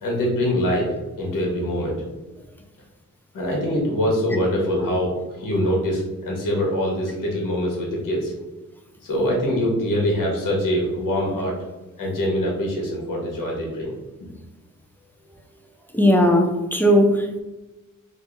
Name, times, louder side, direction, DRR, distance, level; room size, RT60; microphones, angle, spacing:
voice 1, 0.0-2.0 3.3-8.3 9.0-11.5 12.0-13.9, equal, 75° left, -2 dB, 1.2 m, -24 dB
voice 2, 15.9-17.4, equal, 5° left, 3 dB, 0.4 m, -17 dB
2.8 x 2.7 x 3.5 m, 1.1 s
cardioid pair, 105°, 33 cm